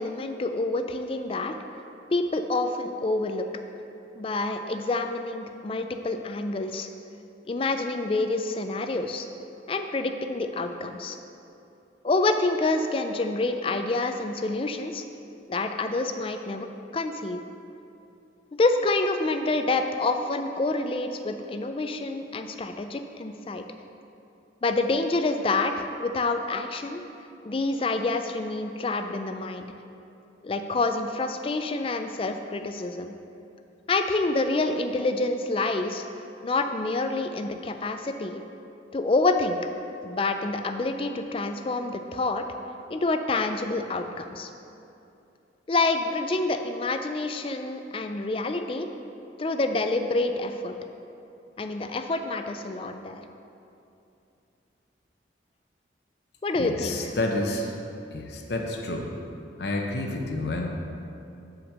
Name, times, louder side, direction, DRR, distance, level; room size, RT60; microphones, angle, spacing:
voice 1, 0.0-1.6 2.1-3.5 4.2-6.9 7.5-9.3 9.7-11.2 12.0-15.0 15.5-16.7 16.9-17.4 18.5-23.6 24.6-27.0 27.4-29.7 30.4-33.1 33.9-36.0 36.4-38.4 38.9-39.6 40.0-42.5 42.9-44.5 45.7-48.9 49.4-50.7 51.6-53.2 56.4-57.0, left 2 dB, 30° left, 7 dB, 0.3 m, -27 dB
voice 2, 56.6-57.8 58.1-59.1 59.6-60.7, left 2 dB, 60° left, 1 dB, 0.7 m, -29 dB
5.8 x 5.1 x 6.4 m, 2.7 s
head